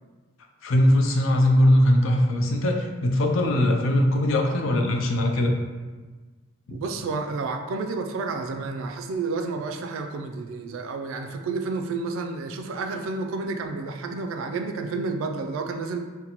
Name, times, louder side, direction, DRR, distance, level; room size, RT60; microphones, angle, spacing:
voice 1, 0.6-5.5 6.7-6.8, left 1 dB, 65° left, 3 dB, 0.4 m, -20 dB
voice 2, 6.7-16.0, right 3 dB, 70° right, 5 dB, 0.3 m, -30 dB
4.0 x 2.1 x 2.9 m, 1.3 s
head